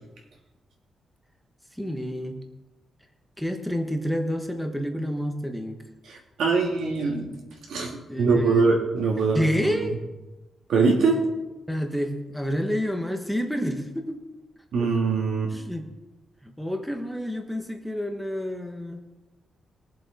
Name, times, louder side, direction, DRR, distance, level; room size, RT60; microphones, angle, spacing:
voice 1, 1.7-2.4 3.4-5.8 8.1-8.7 9.3-10.0 11.7-14.2 15.5-15.9 16.4-19.1, equal, ahead, 4 dB, 1.0 m, -29 dB
voice 2, 6.1-7.3 7.7-9.9 10.7-11.2 14.7-15.5, right 4 dB, 80° right, 0 dB, 2.9 m, -23 dB
21.0 x 7.6 x 4.1 m, 1.1 s
wide cardioid pair, 175°, 0 cm